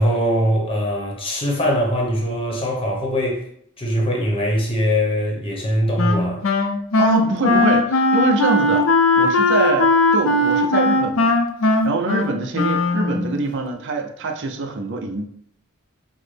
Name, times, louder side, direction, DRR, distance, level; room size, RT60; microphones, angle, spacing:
voice 1, 0.0-3.4 3.8-6.4, equal, 25° left, 0.9 m, -21 dB
Wind instrument woodwind instrument, 6.0-13.4, left 2 dB, 65° left, 0.5 m, -18 dB
voice 2, 7.0-8.9 9.2-15.3, right 3 dB, 55° right, 0.5 m, -24 dB
6.0 x 2.1 x 3.3 m
head